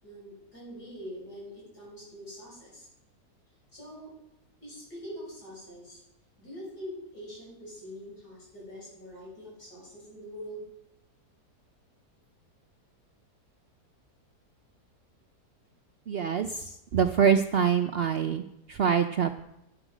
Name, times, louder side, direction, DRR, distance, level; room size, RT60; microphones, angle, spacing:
voice 1, 0.0-2.9 3.7-4.1 4.6-6.0 6.4-10.7, equal, 75° left, -5 dB, 6.5 m, -44 dB
voice 2, 16.1-16.5 16.9-18.4 18.7-19.4, right 7 dB, 85° right, 7 dB, 0.5 m, -24 dB
12.5 x 10.0 x 5.0 m, 0.82 s
omnidirectional pair, 1.8 m